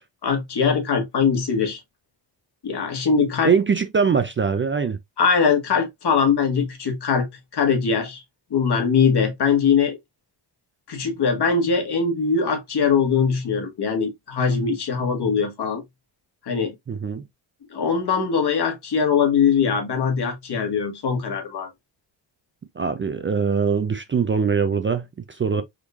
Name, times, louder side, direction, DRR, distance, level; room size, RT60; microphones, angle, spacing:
voice 1, 0.2-1.8 2.6-3.5 5.2-7.3 7.5-8.2 8.5-10.0 10.9-15.8 16.4-16.7 17.7-21.7, left 6 dB, 60° left, 1.4 m, -21 dB
voice 2, 3.4-5.0 16.9-17.2 22.8-25.6, right 6 dB, 30° right, 0.4 m, -22 dB
3.6 x 3.1 x 2.4 m
cardioid pair, 100°, 44 cm